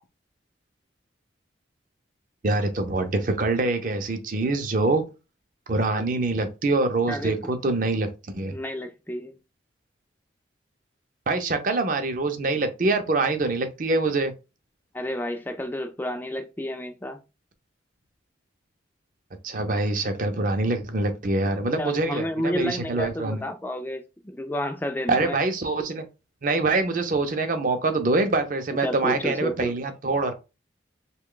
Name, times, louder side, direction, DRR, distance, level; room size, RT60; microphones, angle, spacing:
voice 1, 2.4-5.0 5.7-8.5 11.3-14.3 19.4-23.4 25.1-26.1 26.4-30.3, right 2 dB, 45° right, 0.5 m, -25 dB
voice 2, 7.1-7.5 8.5-9.3 14.9-17.2 21.8-25.4 28.8-29.7, equal, 10° left, 0.3 m, -31 dB
3.0 x 2.2 x 3.7 m
head